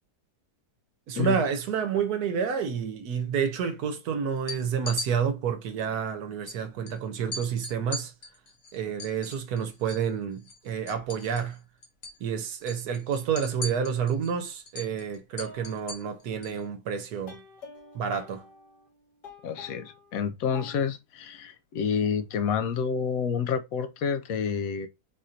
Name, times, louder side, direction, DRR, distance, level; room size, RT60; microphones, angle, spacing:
voice 1, 1.1-8.1 8.7-11.6 12.2-17.4 17.9-18.4, right 7 dB, 70° right, 1.2 m, -29 dB
sound 1, 4.4-5.1 6.5-6.6 6.9-7.0 7.3-10.1 10.4-11.6 11.8-12.2 12.5-16.6, left 3 dB, 45° left, 1.1 m, -39 dB
sound 2, 15.4-16.7 17.3-20.2 20.5-20.8, left 3 dB, 90° left, 2.3 m, -48 dB
voice 2, 19.4-24.9, left 7 dB, 70° left, 0.9 m, -29 dB
4.1 x 2.5 x 4.2 m
omnidirectional pair, 1.7 m